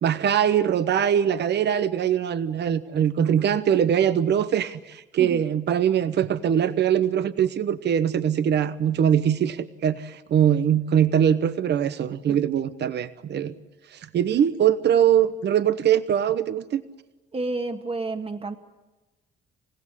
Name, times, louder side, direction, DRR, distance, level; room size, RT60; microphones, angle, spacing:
voice 1, 0.0-13.5 13.9-16.8, right 9 dB, 60° right, 13 dB, 1.0 m, -22 dB
voice 2, 17.3-18.6, right 3 dB, 30° right, 7 dB, 1.6 m, -30 dB
28.5 x 16.0 x 9.8 m, 1.1 s
cardioid pair, 90°, 20 cm